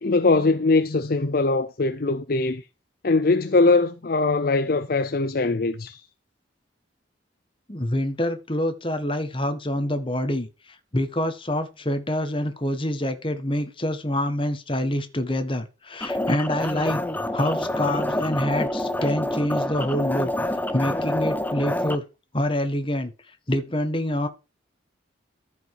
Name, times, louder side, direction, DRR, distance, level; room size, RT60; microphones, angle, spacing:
voice 1, 0.0-2.6 3.0-6.0, left 3 dB, 50° left, 0.6 m, -21 dB
voice 2, 7.7-17.0 17.3-20.3 20.7-22.0 22.3-23.1 23.5-24.3, left 1 dB, 25° left, 1.5 m, -26 dB
sound 1, 16.0-22.0, left 1 dB, 10° left, 0.7 m, -27 dB
14.0 x 5.4 x 4.8 m
head